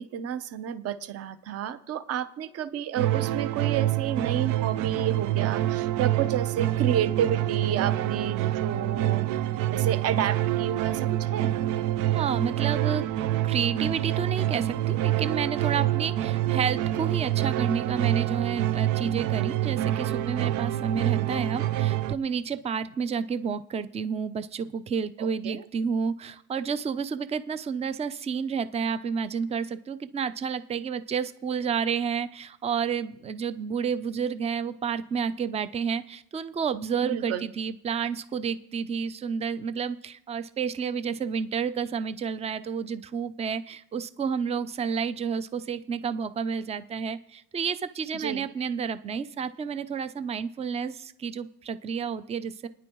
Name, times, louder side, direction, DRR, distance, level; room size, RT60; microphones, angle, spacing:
voice 1, 0.0-9.4 9.7-11.5 25.2-25.6 37.0-37.5 48.1-48.5, right 9 dB, 35° right, 13 dB, 0.9 m, -31 dB
sound 1, 3.0-22.1, right 13 dB, 70° right, 0.7 m, -26 dB
voice 2, 12.0-13.1 13.4-52.7, right 6 dB, 15° right, 13 dB, 0.5 m, -30 dB
29.0 x 9.9 x 3.1 m, 0.82 s
supercardioid pair, 110°, 40 cm